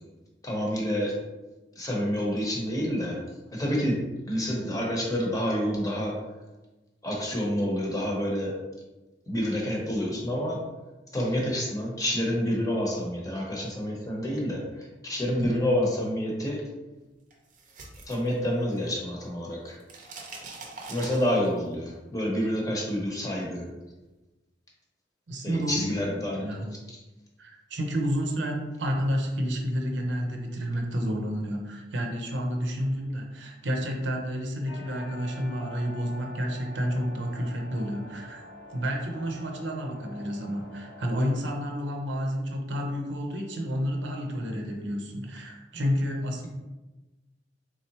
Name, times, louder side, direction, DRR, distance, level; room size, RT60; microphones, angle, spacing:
voice 1, 0.4-1.1 1.8-3.2 3.5-6.2 7.0-8.5 9.3-10.6 11.1-16.6 18.1-19.8 20.9-23.7 25.4-26.5, equal, 20° left, -2 dB, 0.8 m, -28 dB
sound 1, 17.3-19.0 19.3-21.7, right 3 dB, 45° right, 0.6 m, -43 dB
voice 2, 25.3-26.0 26.4-26.7 27.4-38.4 38.7-46.5, equal, 85° right, 1 dB, 0.7 m, -30 dB
sound 2, 34.7-41.4, left 1 dB, 70° left, 0.5 m, -46 dB
3.7 x 3.1 x 2.9 m, 1.1 s
head